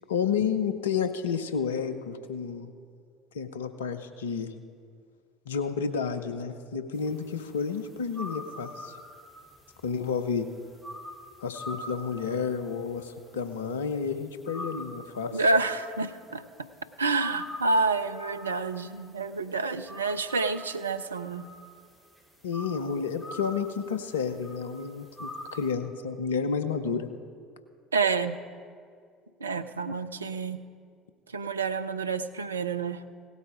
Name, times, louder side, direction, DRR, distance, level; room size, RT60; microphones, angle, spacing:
voice 1, 0.1-2.7 3.3-4.5 5.5-8.9 9.8-10.5 11.4-15.3 22.4-27.1, left 6 dB, 75° left, 10 dB, 0.7 m, -31 dB
sound 1, 6.9-25.7, left 1 dB, 5° left, 3.6 m, -46 dB
voice 2, 15.3-16.4 17.0-21.4 27.9-28.3 29.4-30.6 31.3-33.0, right 3 dB, 80° right, 9 dB, 0.4 m, -28 dB
17.0 x 8.2 x 5.0 m, 2.2 s
figure-of-eight pair, 60°, 0 cm